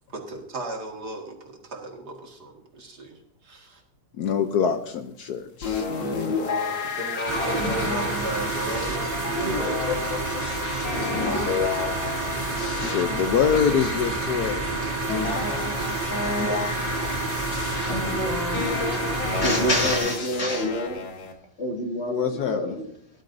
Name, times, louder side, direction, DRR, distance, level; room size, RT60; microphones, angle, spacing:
voice 1, 0.1-3.8 6.0-9.8, right 1 dB, 60° right, 1 dB, 2.6 m, -35 dB
voice 2, 4.2-6.1 12.8-14.6 22.0-22.8, left 7 dB, 65° left, 8 dB, 1.2 m, -25 dB
sound 1, 5.6-21.3, left 4 dB, 85° left, 2.3 m, -31 dB
sound 2, 7.3-20.0, right 2 dB, 30° right, 2.8 m, -29 dB
voice 3, 19.2-21.0 21.6-22.9, left 1 dB, 35° left, 0 dB, 2.3 m, -26 dB
18.0 x 11.5 x 2.7 m, 0.68 s
omnidirectional pair, 2.0 m